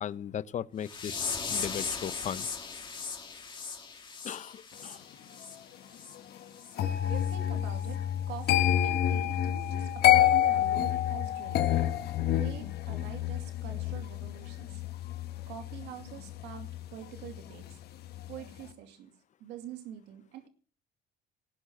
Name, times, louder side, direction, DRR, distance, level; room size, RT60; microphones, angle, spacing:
voice 1, 0.0-2.5 4.2-5.0, left 9 dB, 45° left, 16 dB, 0.8 m, -37 dB
sound 1, 0.8-5.6 5.9-6.2 6.6-6.7 7.2-7.3 7.8-7.9, left 5 dB, 30° left, 2.9 m, -37 dB
sound 2, 6.8-17.7 18.0-18.4, left 12 dB, 70° left, 1.7 m, -28 dB
voice 2, 7.0-11.7 12.3-14.8 15.5-17.8 18.3-19.1 19.4-20.5, right 10 dB, 85° right, 5 dB, 2.5 m, -45 dB
18.5 x 6.3 x 9.0 m, 0.41 s
cardioid pair, 110°, 17 cm